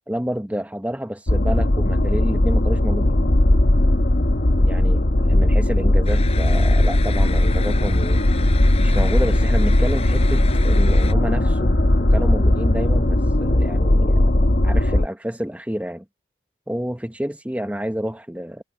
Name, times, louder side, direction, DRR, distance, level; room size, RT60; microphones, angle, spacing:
voice 1, 0.1-3.2 4.6-8.4 8.8-11.8 12.1-14.3 14.6-16.0 16.7-18.6, equal, 10° right, 0.9 m, -29 dB
sound 1, 1.3-15.1, left 1 dB, 65° left, 1.1 m, -18 dB
sound 2, 6.1-11.1, left 7 dB, 35° left, 7.7 m, -36 dB
head